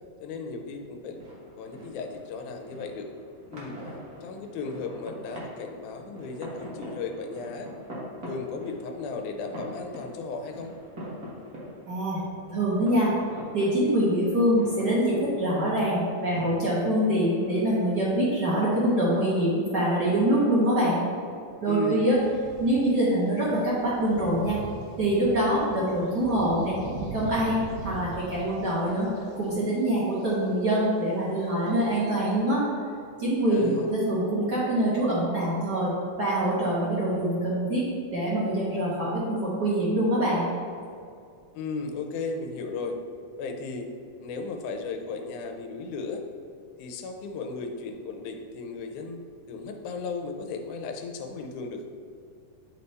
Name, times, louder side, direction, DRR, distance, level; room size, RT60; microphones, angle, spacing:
voice 1, 0.2-1.2 1.6-3.1 3.5-3.8 4.2-7.7 8.3-10.7 21.7-22.0 33.5-33.9 41.5-43.0 43.4-43.9 44.2-46.2 46.8-49.2 49.5-51.9, left 4 dB, 80° left, 4 dB, 2.0 m, -35 dB
sound 1, 0.8-20.0, equal, 50° right, 1.1 m, -44 dB
voice 2, 11.9-13.1 13.5-21.0 21.6-22.2 22.6-24.6 25.0-26.8 27.1-29.1 29.3-32.6 33.2-35.9 36.2-37.8 38.1-40.5, right 1 dB, 65° right, -7 dB, 1.0 m, -24 dB
sound 2, 22.1-22.9 23.3-29.5 29.8-29.9 30.1-30.7 31.4-32.4, right 3 dB, 85° right, 2.6 m, -41 dB
9.1 x 3.4 x 4.0 m, 2.3 s
omnidirectional pair, 3.6 m